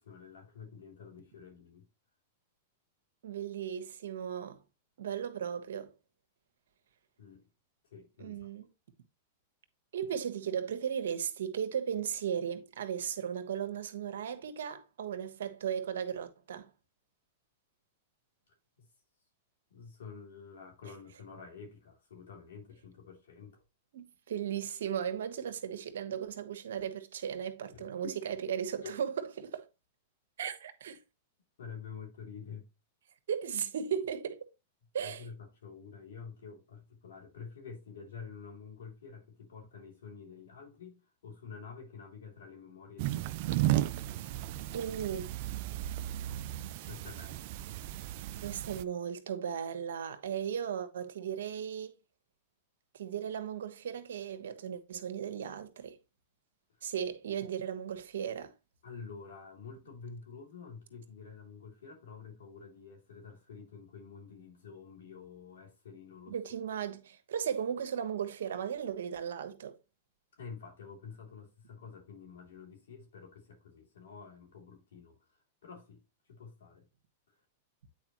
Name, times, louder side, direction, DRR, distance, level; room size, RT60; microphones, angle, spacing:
voice 1, 0.0-1.8 7.2-7.5 7.9-8.5 18.8-18.9 19.7-23.6 27.7-28.2 28.8-28.9 31.6-32.7 35.0-43.6 46.8-47.5 58.8-66.3 70.4-76.0 76.3-76.9, left 5 dB, 80° left, 3.0 m, -49 dB
voice 2, 3.2-4.6 5.0-5.9 8.2-8.7 9.9-16.7 23.9-29.6 30.4-31.0 33.3-34.4 34.9-35.2 44.7-45.3 48.4-51.9 52.9-56.0 56.8-58.5 66.3-69.8, right 8 dB, 75° right, 1.2 m, -36 dB
sound 1, 43.0-48.8, right 14 dB, 55° right, 0.4 m, -34 dB
8.6 x 4.6 x 3.0 m
hypercardioid pair, 120°, 0 cm